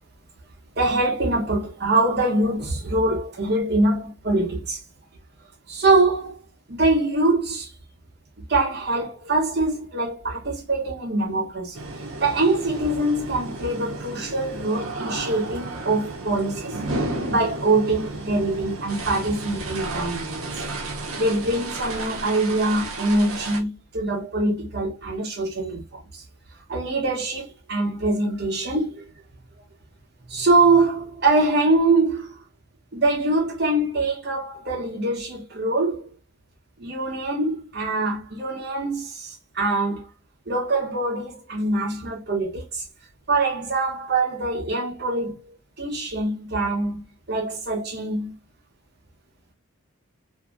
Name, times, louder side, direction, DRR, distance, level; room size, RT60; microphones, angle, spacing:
voice 1, 0.8-4.8 5.7-6.4 6.7-7.7 8.5-11.8 12.2-16.8 17.3-20.5 21.2-26.2 26.7-29.1 30.3-32.4 32.9-36.1 36.8-40.1 40.5-42.8 43.3-47.0 47.3-48.3, right 2 dB, 50° right, 0.9 m, -23 dB
sound 1, 11.7-23.6, right 2 dB, 90° right, 0.7 m, -33 dB
2.8 x 2.6 x 2.4 m
head